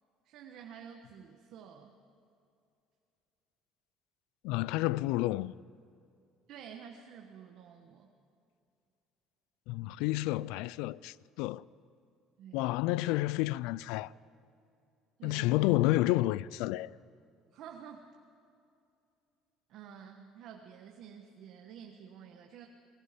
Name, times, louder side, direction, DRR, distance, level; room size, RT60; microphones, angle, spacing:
voice 1, 0.2-2.0 6.5-8.1 12.4-12.7 15.2-15.7 17.5-18.1 19.7-22.7, right 8 dB, 55° right, 1.5 m, -50 dB
voice 2, 4.4-5.5 9.7-11.6 12.5-14.1 15.2-16.9, left 18 dB, 90° left, 0.4 m, -30 dB
28.0 x 20.0 x 5.2 m
cardioid pair, 170°, 0 cm